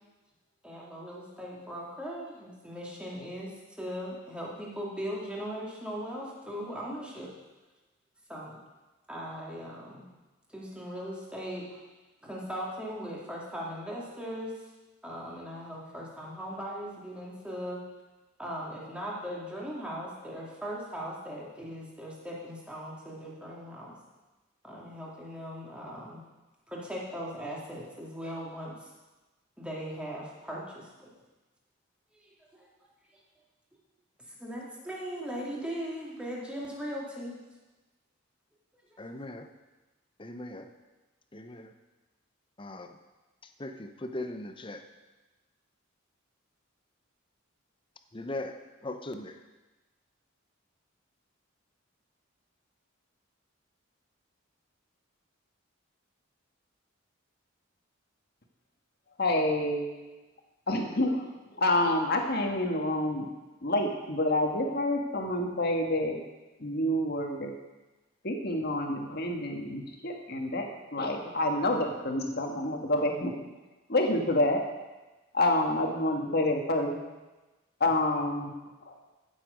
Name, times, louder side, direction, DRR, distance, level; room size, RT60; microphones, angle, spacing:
voice 1, 0.6-7.3 8.3-8.6 9.1-10.1 10.5-11.8 12.2-14.5 15.0-17.8 18.4-24.0 24.6-26.2 26.7-28.9 29.6-31.1 32.2-32.7 34.3-37.4 38.9-39.0, equal, 5° right, -5 dB, 2.4 m, -39 dB
voice 2, 39.0-39.5 40.2-40.7 41.3-41.7 42.6-43.0 43.4-44.9 48.1-49.4, left 2 dB, 25° left, 7 dB, 0.7 m, -39 dB
voice 3, 59.2-59.9 60.7-61.3 61.6-63.3 63.6-66.2 66.6-67.5 68.2-73.4 73.9-74.6 75.3-76.9 77.8-78.5 78.9-79.0, left 1 dB, 50° left, 2 dB, 1.6 m, -28 dB
15.0 x 7.5 x 5.2 m, 1.2 s
head